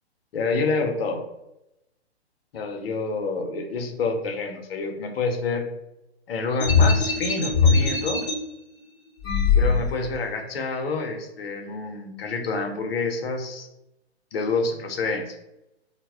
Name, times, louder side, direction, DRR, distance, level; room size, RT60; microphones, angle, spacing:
voice 1, 0.3-1.2 2.5-5.7 6.3-8.2 9.5-13.7 14.3-15.3, left 3 dB, 60° left, 4 dB, 0.6 m, -28 dB
sound 1, 6.6-8.3 9.2-10.2, left 5 dB, 15° left, 0.5 m, -20 dB
2.0 x 2.0 x 3.4 m, 0.90 s
hypercardioid pair, 130°, 33 cm